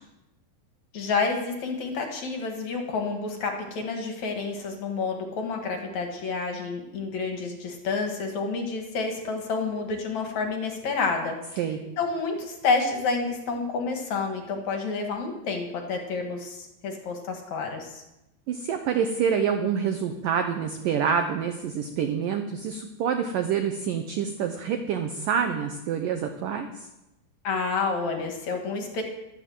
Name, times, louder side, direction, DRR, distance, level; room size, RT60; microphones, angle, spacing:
voice 1, 0.9-11.6 12.0-18.0 27.4-29.0, left 4 dB, 55° left, 3 dB, 2.4 m, -29 dB
voice 2, 18.5-26.9, right 7 dB, 85° right, 6 dB, 1.9 m, -27 dB
13.0 x 12.0 x 7.7 m, 0.93 s
omnidirectional pair, 5.3 m